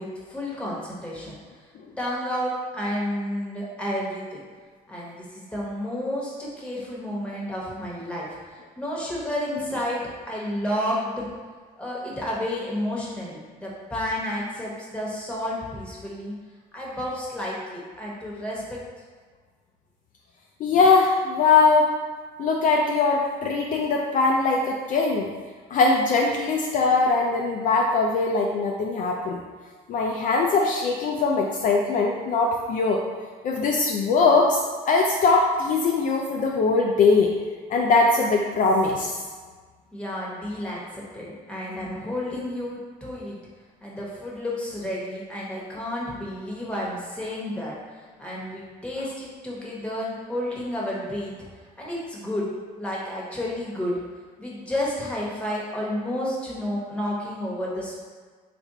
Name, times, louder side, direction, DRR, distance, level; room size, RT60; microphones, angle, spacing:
voice 1, 0.0-1.4 1.9-4.4 4.9-11.3 11.8-16.3 16.7-18.8 39.9-43.4 43.8-51.4 51.8-52.5 52.8-54.0 54.4-58.0, left 1 dB, 5° left, -5 dB, 1.0 m, -31 dB
voice 2, 20.6-21.9 22.4-25.3 25.7-29.4 29.9-33.0 33.4-37.3 37.7-39.2, left 4 dB, 50° left, 0 dB, 0.4 m, -21 dB
3.3 x 2.5 x 4.0 m, 1.5 s
cardioid pair, 110°, 17 cm